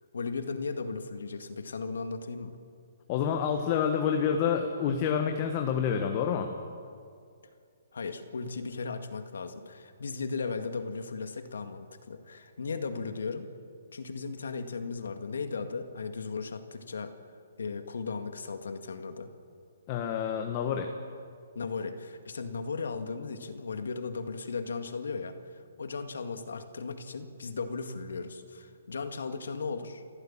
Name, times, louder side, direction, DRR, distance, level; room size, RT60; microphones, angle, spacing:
voice 1, 0.1-2.6 7.9-13.5 13.9-17.1 17.6-19.3 21.5-30.0, left 4 dB, 90° left, 7 dB, 2.1 m, -36 dB
voice 2, 3.1-6.5 19.9-20.9, left 7 dB, 30° left, 4 dB, 1.4 m, -28 dB
29.0 x 14.5 x 7.5 m, 2.3 s
hypercardioid pair, 160°, 0 cm